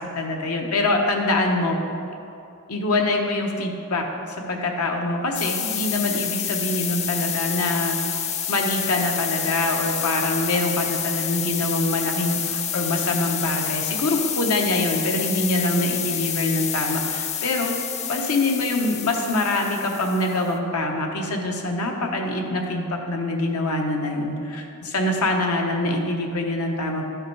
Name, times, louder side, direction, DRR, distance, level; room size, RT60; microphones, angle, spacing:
voice 1, 0.0-1.8 2.7-4.1 4.4-8.0 8.5-17.7 18.1-27.1, left 2 dB, 85° left, 2 dB, 1.0 m, -24 dB
sound 1, 5.3-20.5, left 8 dB, 30° left, 0.4 m, -28 dB
11.5 x 5.8 x 4.6 m, 2.7 s
head